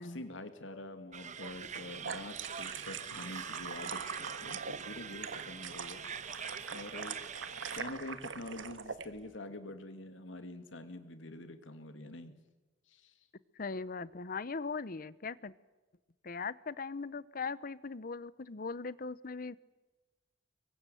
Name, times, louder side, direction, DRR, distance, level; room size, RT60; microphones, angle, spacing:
voice 1, 0.0-6.0 6.7-7.2 7.7-12.3 12.9-13.1, left 2 dB, 90° left, 8 dB, 2.6 m, -46 dB
sound 1, 1.1-7.8, right 7 dB, 40° right, 1.1 m, -44 dB
sound 2, 1.6-9.1, right 6 dB, 80° right, 1.5 m, -43 dB
voice 2, 13.6-15.5 16.2-19.6, left 4 dB, 50° left, 18 dB, 0.8 m, -39 dB
25.5 x 22.5 x 9.2 m, 1.2 s
head